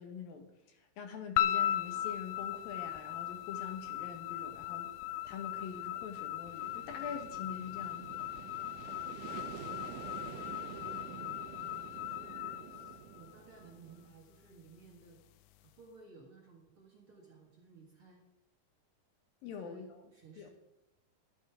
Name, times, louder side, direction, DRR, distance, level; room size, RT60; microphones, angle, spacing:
voice 1, 0.0-4.9 5.2-8.5 19.4-20.5, left 6 dB, 70° left, 5 dB, 2.7 m, -45 dB
sound 1, 1.4-13.7, left 12 dB, 85° left, 2.6 m, -38 dB
sound 2, 5.5-14.1, right 10 dB, 90° right, 1.8 m, -49 dB
voice 2, 10.6-15.2 15.6-18.2 19.4-20.5, right 4 dB, 45° right, -2 dB, 2.1 m, -58 dB
11.5 x 11.0 x 4.9 m, 0.91 s
omnidirectional pair, 4.6 m